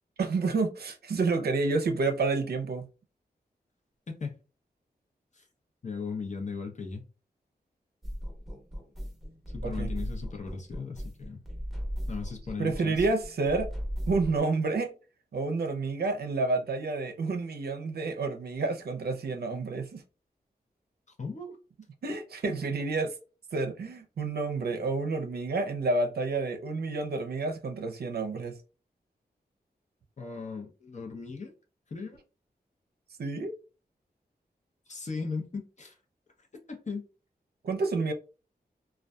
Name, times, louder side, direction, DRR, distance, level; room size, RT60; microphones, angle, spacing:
voice 1, 0.2-2.9 9.6-9.9 12.6-13.7 14.1-14.9 15.3-20.0 22.0-23.1 23.5-28.6 33.2-33.5 37.6-38.1, right 3 dB, 70° right, 0.5 m, -29 dB
voice 2, 5.8-7.1 9.5-11.4 12.1-13.0 21.2-21.6 30.2-31.5 31.9-32.2 34.9-36.0 36.7-37.0, left 4 dB, 45° left, 0.7 m, -37 dB
sound 1, 8.0-14.4, equal, ahead, 0.9 m, -37 dB
2.5 x 2.2 x 2.2 m
wide cardioid pair, 70°, 17 cm